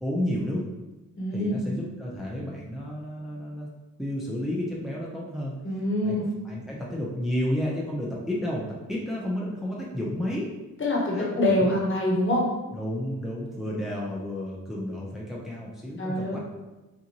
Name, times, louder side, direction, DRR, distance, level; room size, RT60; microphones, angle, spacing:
voice 1, 0.0-0.7 1.3-3.7 4.0-5.5 6.0-6.2 6.4-10.5 11.1-11.3 12.7-16.4, equal, ahead, -4 dB, 0.8 m, -31 dB
voice 2, 1.2-1.6 5.6-6.3 10.8-12.5 16.0-16.4, left 1 dB, 40° left, -3 dB, 1.4 m, -25 dB
5.6 x 2.6 x 2.9 m, 1.1 s
cardioid pair, 70°, 33 cm